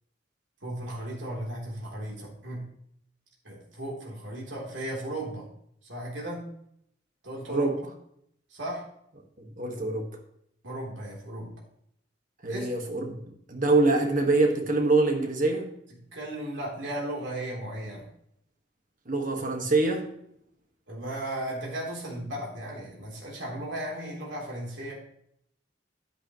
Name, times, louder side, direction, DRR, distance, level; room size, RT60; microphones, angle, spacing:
voice 1, 0.6-2.6 3.4-5.5 5.8-6.5 7.2-7.7 8.5-8.9 10.6-11.5 12.5-12.8 16.1-18.1 20.9-24.9, right 1 dB, 70° right, -4 dB, 3.7 m, -36 dB
voice 2, 9.4-10.1 12.4-13.1 13.5-15.7 19.1-20.1, right 2 dB, 45° right, 3 dB, 1.8 m, -24 dB
10.5 x 10.5 x 3.2 m, 0.70 s
head